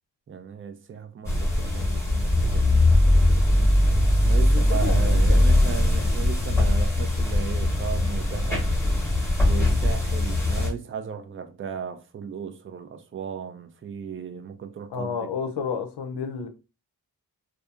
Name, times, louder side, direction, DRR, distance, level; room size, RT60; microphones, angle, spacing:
voice 1, 0.3-2.9 4.2-8.7 9.4-15.2, right 7 dB, 30° right, 0.4 m, -36 dB
sound 1, 1.2-10.7, left 1 dB, 5° left, 0.9 m, -21 dB
voice 2, 4.4-5.4 14.9-16.5, left 6 dB, 80° left, 0.5 m, -31 dB
2.7 x 2.3 x 2.4 m
wide cardioid pair, 80°, 40 cm